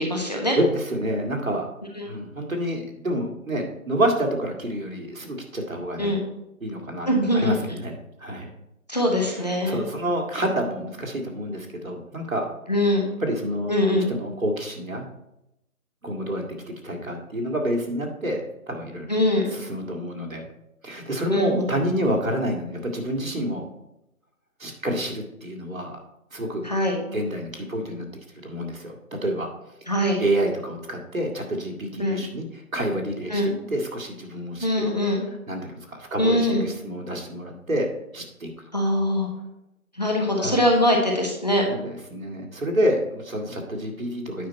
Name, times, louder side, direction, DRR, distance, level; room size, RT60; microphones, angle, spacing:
voice 1, 0.0-0.6 2.0-2.1 6.0-6.2 7.1-7.5 8.9-9.8 12.7-13.0 13.7-14.1 19.1-19.5 21.3-21.7 26.6-27.0 29.9-30.2 32.0-32.2 33.3-33.5 34.6-35.2 36.2-36.7 38.7-39.3 39.9-41.7, left 1 dB, 30° left, 0 dB, 1.2 m, -22 dB
voice 2, 0.6-1.7 2.0-6.1 6.6-7.1 7.3-7.9 8.2-8.5 9.3-12.5 13.2-13.7 14.1-15.1 16.0-19.1 19.5-20.5 20.8-23.6 24.6-26.0 26.3-26.7 27.1-28.1 28.4-29.5 30.2-32.5 32.7-34.9 35.5-37.9 38.1-38.5 40.4-40.6 41.7-44.5, right 1 dB, 65° right, 2 dB, 2.1 m, -28 dB
9.4 x 5.9 x 4.3 m, 0.86 s
figure-of-eight pair, 175°, 44 cm